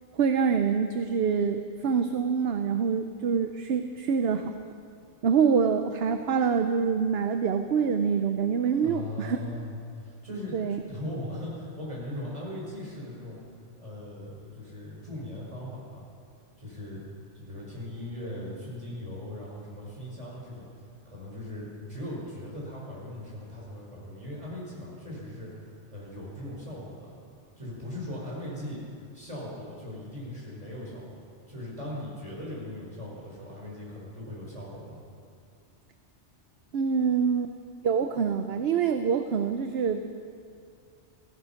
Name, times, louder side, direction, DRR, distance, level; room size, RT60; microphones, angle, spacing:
voice 1, 0.2-4.5 5.2-9.4 10.5-10.8 36.7-37.5 37.8-40.1, right 6 dB, 65° right, 7 dB, 0.9 m, -25 dB
voice 2, 8.8-13.4 13.8-16.1 16.6-17.0 17.3-20.7 21.0-27.2 27.6-28.8 29.1-35.0, left 1 dB, 30° right, -5 dB, 5.2 m, -39 dB
16.0 x 15.5 x 5.8 m, 2.3 s
omnidirectional pair, 1.2 m